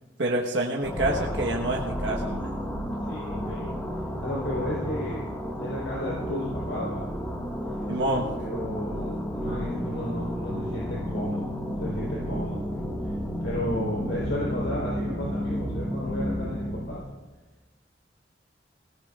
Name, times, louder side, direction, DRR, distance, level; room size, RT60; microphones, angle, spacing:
voice 1, 0.2-2.5 7.9-8.3, right 1 dB, 75° right, -1 dB, 1.2 m, -27 dB
sound 1, 0.8-17.0, equal, 10° left, 1.6 m, -32 dB
voice 2, 3.0-3.8 4.2-5.3 5.6-7.1 8.4-11.5 11.8-13.1 13.4-17.0, left 1 dB, 90° left, -5 dB, 3.8 m, -33 dB
24.0 x 17.0 x 2.4 m, 1.2 s
head